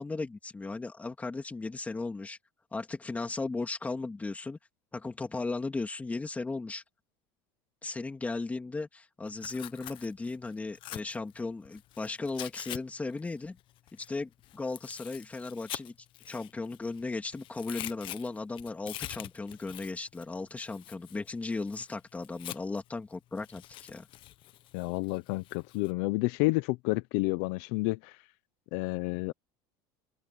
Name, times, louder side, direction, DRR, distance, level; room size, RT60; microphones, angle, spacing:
voice 1, 0.0-2.4 2.7-4.6 4.9-6.8 7.8-13.6 14.0-15.9 16.3-24.1, left 3 dB, 15° left, 3.0 m, -36 dB
Tearing, 9.3-12.8 13.1-17.0 17.3-22.9 23.4-25.9, left 14 dB, 50° left, 1.3 m, -45 dB
voice 2, 24.7-28.2 28.7-29.3, left 23 dB, 75° left, 0.8 m, -30 dB
supercardioid pair, 130°, 11 cm